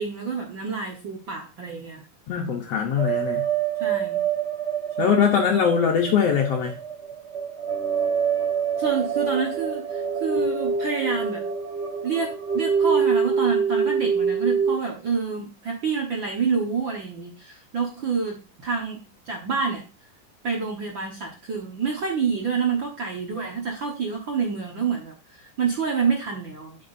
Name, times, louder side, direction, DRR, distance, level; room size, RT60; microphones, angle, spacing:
voice 1, 0.0-2.0 3.8-4.2 5.0-5.4 8.8-11.4 12.0-19.0 19.3-19.8 20.4-26.8, right 5 dB, 50° right, 1.5 m, -28 dB
voice 2, 2.3-3.4 5.0-6.7, left 7 dB, 70° left, 1.6 m, -22 dB
sound 1, 3.0-14.8, right 6 dB, 35° right, 1.2 m, -25 dB
12.5 x 5.9 x 2.6 m
omnidirectional pair, 3.8 m